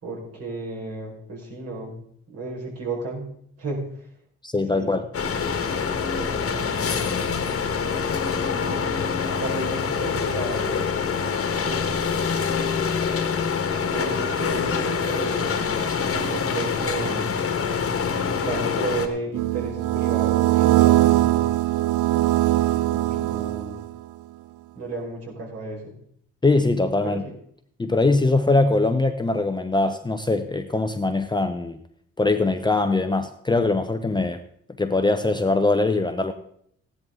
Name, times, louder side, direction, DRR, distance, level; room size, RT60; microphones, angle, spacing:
voice 1, 0.0-3.8 4.7-5.0 5.9-7.3 8.3-10.9 11.5-12.3 13.8-15.8 16.1-17.3 18.3-21.4 22.7-23.8 24.7-26.0 27.0-27.3, right 2 dB, 50° right, -2 dB, 4.9 m, -33 dB
voice 2, 4.4-5.1 26.4-27.2 27.8-31.8 32.2-34.4 34.8-36.3, left 3 dB, 15° left, 7 dB, 0.8 m, -22 dB
sound 1, 5.1-19.1, left 6 dB, 45° left, 1.5 m, -25 dB
sound 2, 19.3-24.0, right 16 dB, 90° right, 0.5 m, -21 dB
15.0 x 10.5 x 3.8 m, 0.67 s
cardioid pair, 90°, 30 cm